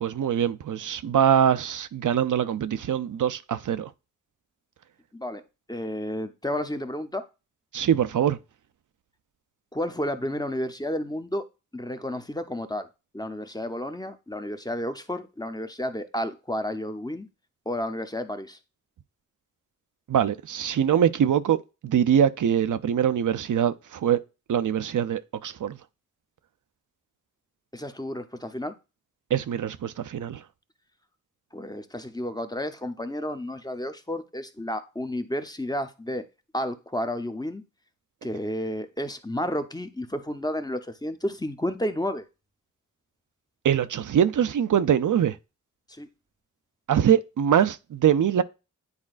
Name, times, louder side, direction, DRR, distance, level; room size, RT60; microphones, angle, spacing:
voice 1, 0.0-3.9 7.7-8.4 20.1-21.6 21.8-24.2 24.5-25.8 29.3-30.4 43.6-45.4 46.9-48.4, right 9 dB, 80° right, 0.5 m, -23 dB
voice 2, 5.7-7.3 9.7-11.4 11.7-12.9 13.1-17.3 17.7-18.6 27.7-28.7 31.5-36.2 36.5-37.6 38.2-42.2 45.9-46.1, left 1 dB, 15° left, 0.7 m, -31 dB
9.7 x 4.3 x 2.4 m
wide cardioid pair, 80°, 30 cm